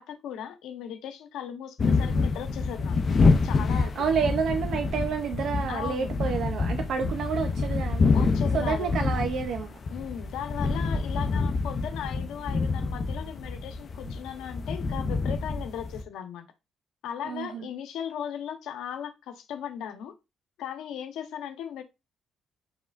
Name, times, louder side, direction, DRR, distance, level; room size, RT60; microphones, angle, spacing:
voice 1, 0.0-3.0 3.4-4.0 5.7-6.1 8.1-8.9 9.9-16.5 17.0-20.1 20.6-21.8, left 9 dB, 90° left, 0.9 m, -37 dB
sound 1, 1.8-16.0, left 4 dB, 45° left, 0.6 m, -27 dB
voice 2, 3.7-8.1 8.5-9.7 17.2-17.7, right 6 dB, 70° right, 0.6 m, -29 dB
5.0 x 3.5 x 2.5 m
cardioid pair, 90°, 0 cm